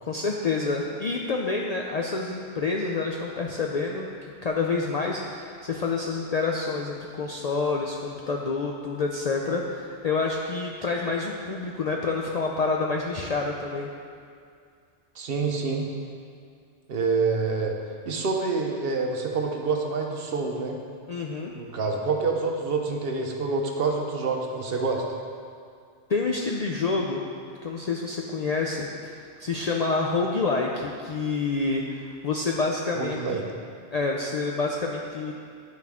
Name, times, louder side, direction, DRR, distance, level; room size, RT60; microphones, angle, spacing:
voice 1, 0.0-4.1 4.4-13.9 21.1-21.5 26.1-27.2 27.6-33.4 33.9-35.3, left 4 dB, 60° left, -1 dB, 0.4 m, -28 dB
voice 2, 15.2-15.9 16.9-17.8 18.1-20.8 21.5-25.0 32.9-33.4, right 4 dB, 60° right, 2 dB, 0.8 m, -27 dB
10.5 x 4.2 x 3.5 m, 2.3 s
omnidirectional pair, 1.2 m